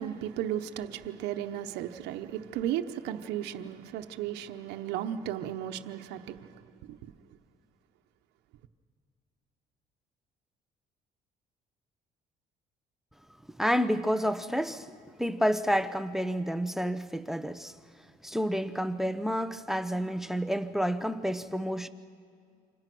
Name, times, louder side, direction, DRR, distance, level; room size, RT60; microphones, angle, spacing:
voice 1, 0.0-6.6 6.9-7.1, right 11 dB, 90° right, 1.0 m, -35 dB
voice 2, 13.6-14.9 15.2-17.7 18.2-21.9, equal, ahead, 0.8 m, -29 dB
28.5 x 26.0 x 6.1 m
cardioid pair, 110°, 17 cm